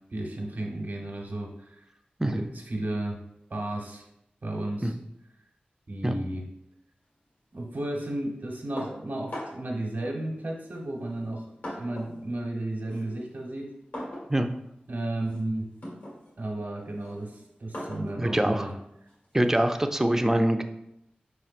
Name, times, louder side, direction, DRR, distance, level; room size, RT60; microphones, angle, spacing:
voice 1, 0.1-1.9 2.2-3.2 3.5-4.1 4.4-4.9 5.9-6.5 7.5-11.5 11.7-13.7 14.9-15.7 16.4-18.7, right 1 dB, 70° right, -1 dB, 1.0 m, -33 dB
sound 1, 8.8-9.8 10.7-12.2 12.5-19.8, equal, 80° left, 1.7 m, -42 dB
voice 2, 18.2-18.7 19.3-20.6, right 1 dB, 15° right, 6 dB, 0.4 m, -24 dB
4.9 x 4.3 x 2.4 m, 0.81 s
wide cardioid pair, 60°, 3 cm